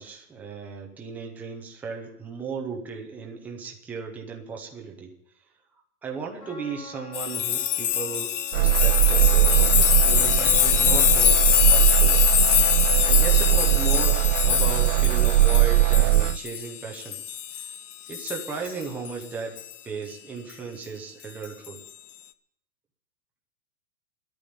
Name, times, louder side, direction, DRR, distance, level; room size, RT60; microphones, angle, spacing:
voice 1, 0.0-5.1 6.0-12.2 13.0-17.2 18.1-19.6 19.8-21.8, right 5 dB, 5° right, 0 dB, 0.7 m, -36 dB
Trumpet, 6.4-12.6, left 4 dB, 75° left, 2.5 m, -48 dB
sound 1, 7.1-17.8 18.1-19.1 19.6-19.7 21.4-21.7, left 11 dB, 55° left, 0.8 m, -23 dB
sound 2, 8.5-16.4, right 20 dB, 75° right, 0.6 m, -20 dB
12.0 x 8.7 x 9.4 m, 0.74 s
hypercardioid pair, 170°, 45 cm